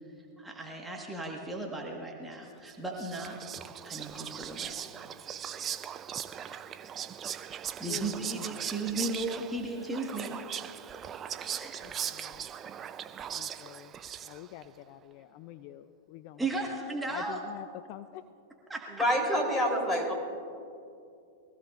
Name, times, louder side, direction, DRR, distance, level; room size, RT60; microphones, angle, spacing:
voice 1, 0.4-3.4 3.8-4.8 7.8-10.4 11.1-11.8 16.4-17.4 18.7-18.9 19.2-20.1, right 2 dB, 10° right, -1 dB, 1.6 m, -36 dB
Whispering, 2.7-14.6, right 9 dB, 30° right, 0.6 m, -39 dB
voice 2, 7.9-8.2 11.8-12.5 13.3-13.9 14.2-16.7 17.0-18.2, left 13 dB, 50° left, 12 dB, 0.5 m, -46 dB
voice 3, 18.9-20.1, equal, 15° left, 0 dB, 3.7 m, -27 dB
23.0 x 15.5 x 2.6 m, 2.5 s
hypercardioid pair, 110°, 0 cm